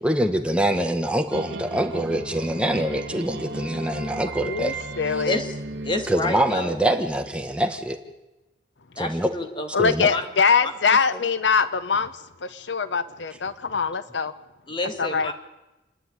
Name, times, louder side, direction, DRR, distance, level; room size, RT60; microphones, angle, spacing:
voice 1, 0.0-4.7 6.1-8.0 9.0-9.3 9.8-10.1, right 1 dB, 5° right, 5 dB, 1.5 m, -24 dB
sound 1, 1.3-6.9, right 2 dB, 80° right, 1.6 m, -35 dB
voice 2, 4.4-5.4 9.7-14.3 15.0-15.3, left 5 dB, 85° left, 13 dB, 0.9 m, -23 dB
voice 3, 5.8-6.8 9.0-9.7 10.1-10.2 14.7-15.3, left 2 dB, 25° left, 6 dB, 2.1 m, -28 dB
29.0 x 10.0 x 10.0 m, 1.0 s
head